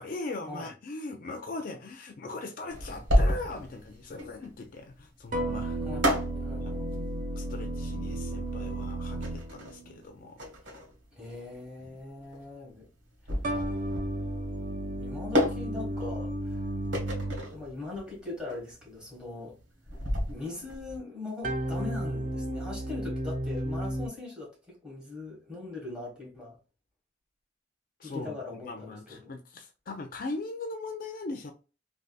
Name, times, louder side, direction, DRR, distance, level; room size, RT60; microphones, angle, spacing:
voice 1, 0.0-5.8 6.6-7.1 7.3-10.4 11.9-12.0 28.0-31.5, left 3 dB, 45° left, 0.4 m, -40 dB
sound 1, 2.7-21.0, equal, 85° right, 1.4 m, -32 dB
sound 2, 5.3-10.0 13.4-17.7 21.4-24.1, right 1 dB, 45° right, 0.4 m, -33 dB
voice 2, 6.3-6.9 11.1-12.9 15.0-16.6 17.5-19.5 20.3-26.6 28.0-29.0 29.2-29.3, left 3 dB, 5° right, 1.4 m, -41 dB
3.4 x 2.6 x 2.3 m
head